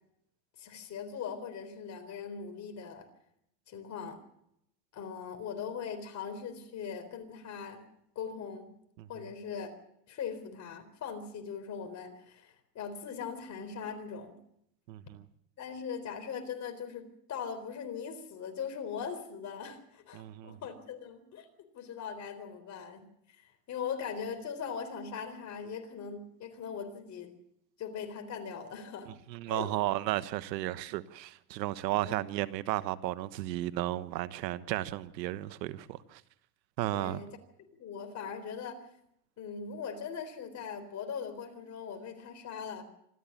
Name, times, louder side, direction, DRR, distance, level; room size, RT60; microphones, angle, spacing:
voice 1, 0.6-3.1 3.7-4.2 4.9-7.8 8.2-8.7 9.1-9.7 10.1-14.4 15.6-21.5 21.7-23.0 23.4-27.3 27.8-29.1 29.5-29.7 32.0-32.2 36.9-37.3 37.6-38.8 39.4-42.8, left 6 dB, 35° left, 4.0 m, -40 dB
voice 2, 14.9-15.2 20.1-20.6 29.3-36.2 36.8-37.2, right 15 dB, 80° right, 1.3 m, -34 dB
26.0 x 14.0 x 7.3 m
supercardioid pair, 130°, 50 cm